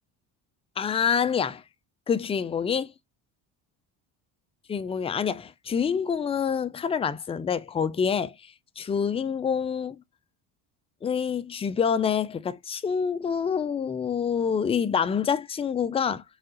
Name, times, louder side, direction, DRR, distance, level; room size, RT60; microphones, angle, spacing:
voice 1, 0.8-1.6 2.1-2.9 4.7-10.0 11.0-16.2, left 7 dB, 15° left, 0.4 m, -27 dB
4.9 x 3.5 x 2.8 m
cardioid pair, 110°, 42 cm